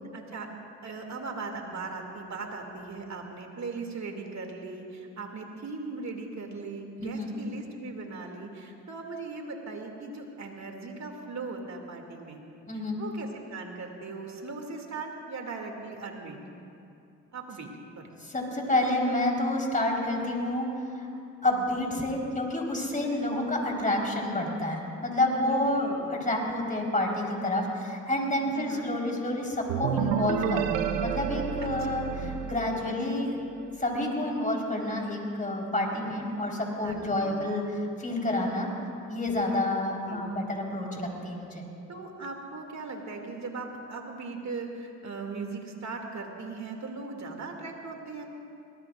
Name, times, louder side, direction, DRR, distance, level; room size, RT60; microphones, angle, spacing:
voice 1, 0.1-0.5 0.8-12.4 13.0-16.4 17.3-17.7 18.0-18.1 25.5-26.1 28.5-28.9 31.6-31.7 31.9-32.1 35.9-36.1 36.8-37.4 40.0-40.2 41.9-48.3, right 3 dB, 45° right, 2 dB, 2.7 m, -39 dB
voice 2, 7.0-7.3 12.7-13.0 18.2-20.7 20.9-21.1 21.4-33.4 33.8-38.7 39.1-41.6, left 1 dB, 20° left, -1 dB, 4.3 m, -29 dB
sound 1, 29.7-33.4, right 9 dB, 85° right, 0.7 m, -30 dB
23.0 x 20.0 x 2.6 m, 2.7 s
hypercardioid pair, 50°, 37 cm